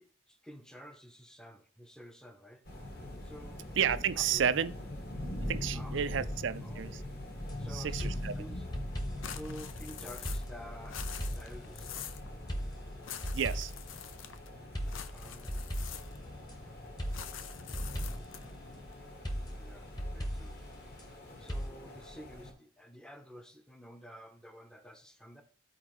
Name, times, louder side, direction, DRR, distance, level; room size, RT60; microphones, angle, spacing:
voice 1, 0.0-2.6 3.2-3.7 4.3-4.5 5.7-6.3 6.6-7.1 7.6-8.7 9.3-11.9 15.1-15.6 19.5-19.9 20.1-20.5 21.4-25.4, equal, 5° left, 0.6 m, -50 dB
sound 1, 2.6-22.5, left 1 dB, 50° left, 1.8 m, -43 dB
voice 2, 3.8-4.7 5.5-7.0 7.7-8.3 13.3-13.7, right 8 dB, 70° right, 0.4 m, -31 dB
sound 2, 7.4-7.6 8.0-9.4 10.2-12.1 12.5-14.0 14.7-16.6 17.0-18.5 19.2-21.1 21.5-21.7, equal, 20° left, 1.1 m, -38 dB
sound 3, 9.2-10.6 10.8-12.3 13.0-14.5 14.9-16.4 17.1-18.6, left 9 dB, 85° left, 0.5 m, -45 dB
12.0 x 4.5 x 3.0 m
head